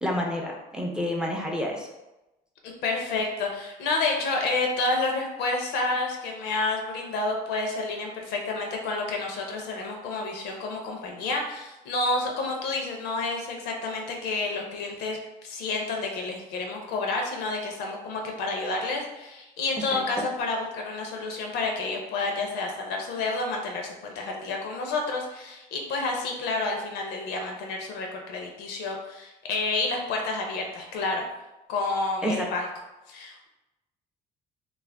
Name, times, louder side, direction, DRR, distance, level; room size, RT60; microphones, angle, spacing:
voice 1, 0.0-1.9 19.7-20.0 32.2-32.5, equal, 5° right, 0 dB, 0.4 m, -29 dB
voice 2, 2.8-31.2 31.7-32.7 33.1-33.5, left 3 dB, 80° left, 2 dB, 0.6 m, -29 dB
2.4 x 2.1 x 3.3 m, 0.99 s
cardioid pair, 110°, 17 cm